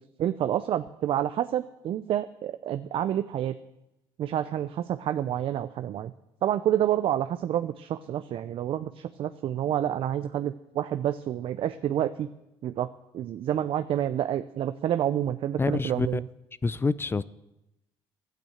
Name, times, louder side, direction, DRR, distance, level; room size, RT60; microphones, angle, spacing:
voice 1, 0.2-3.5 4.2-6.1 6.4-12.3 12.6-12.9 13.1-16.2, right 11 dB, 60° right, 0.6 m, -28 dB
voice 2, 15.6-16.2 16.6-17.2, left 4 dB, 20° left, 0.5 m, -26 dB
12.0 x 9.2 x 7.9 m
supercardioid pair, 75°, 10 cm